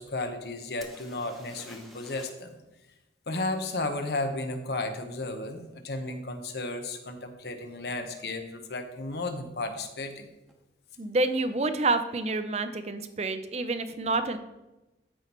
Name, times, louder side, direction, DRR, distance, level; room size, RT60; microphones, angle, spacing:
voice 1, 0.0-2.6 3.3-10.3, left 2 dB, 60° left, 6 dB, 0.9 m, -34 dB
sound 1, 0.8-2.5 2.8-2.9 6.3-6.4 7.0-7.2 7.5-8.1 10.1-10.2 10.5-10.6, equal, ahead, 1.0 m, -51 dB
voice 2, 11.0-14.4, right 2 dB, 35° right, 10 dB, 0.5 m, -28 dB
14.0 x 5.4 x 3.0 m, 1.0 s
head